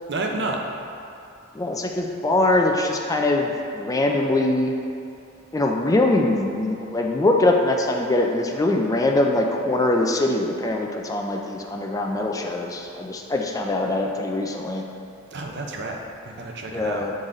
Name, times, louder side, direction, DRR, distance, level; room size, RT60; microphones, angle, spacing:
voice 1, 0.1-0.6 15.3-16.0 16.2-17.1, right 2 dB, 60° right, 1 dB, 0.7 m, -29 dB
voice 2, 1.5-4.7 5.5-14.8 16.7-17.1, left 2 dB, 15° left, 1 dB, 0.4 m, -22 dB
7.5 x 4.0 x 3.8 m, 2.6 s
head